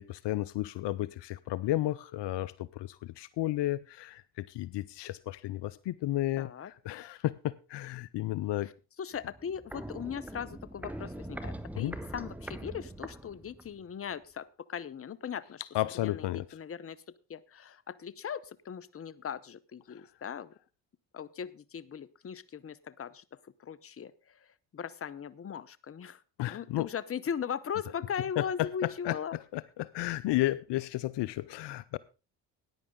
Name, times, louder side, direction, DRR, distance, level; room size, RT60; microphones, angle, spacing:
voice 1, 0.0-8.7 11.7-12.0 15.7-16.5 26.4-26.9 28.4-32.0, left 15 dB, 65° left, 0.7 m, -33 dB
voice 2, 6.4-6.7 9.0-15.6 16.0-20.5 21.1-26.2 26.5-29.4, left 7 dB, 30° left, 0.8 m, -39 dB
Walk footsteps, 9.1-13.8 14.1-14.2, right 1 dB, 5° right, 1.5 m, -42 dB
14.5 x 10.0 x 3.7 m
hypercardioid pair, 60°, 46 cm